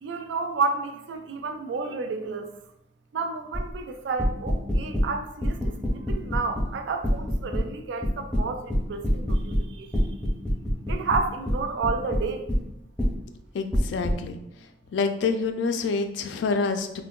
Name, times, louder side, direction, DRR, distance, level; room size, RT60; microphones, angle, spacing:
voice 1, 0.0-2.5 3.1-9.9 10.9-12.5, right 4 dB, 70° right, 6 dB, 0.3 m, -31 dB
sound 1, 3.5-3.8 4.2-5.1 5.4-6.7 7.0-7.6 8.0-9.7 9.9-12.6 13.0-13.1 13.7-14.1, equal, 5° left, 0.5 m, -25 dB
voice 2, 13.5-14.4 14.9-17.0, left 4 dB, 70° left, 7 dB, 0.3 m, -27 dB
3.5 x 2.1 x 2.2 m, 0.83 s
head